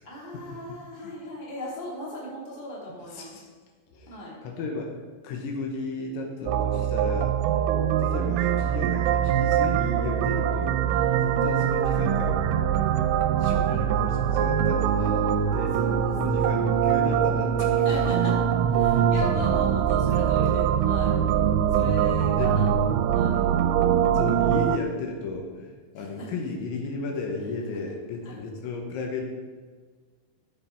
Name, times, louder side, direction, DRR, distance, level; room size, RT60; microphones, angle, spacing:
voice 1, 0.0-3.4 4.1-4.4 6.4-7.0 10.9-11.1 15.7-16.9 17.7-21.2 21.7-22.7 23.1-23.4 25.9-26.3 28.2-28.4, left 1 dB, 15° left, -5 dB, 1.9 m, -38 dB
voice 2, 3.1-3.5 3.9-4.2 4.4-7.4 8.0-10.8 11.2-12.7 13.4-15.8 16.2-18.0 22.4-22.6 23.1-23.2 24.1-29.2, left 3 dB, 75° left, 1 dB, 3.3 m, -34 dB
sound 1, 6.5-24.8, right 9 dB, 85° right, 2.8 m, -23 dB
15.0 x 6.6 x 4.5 m, 1.5 s
omnidirectional pair, 5.7 m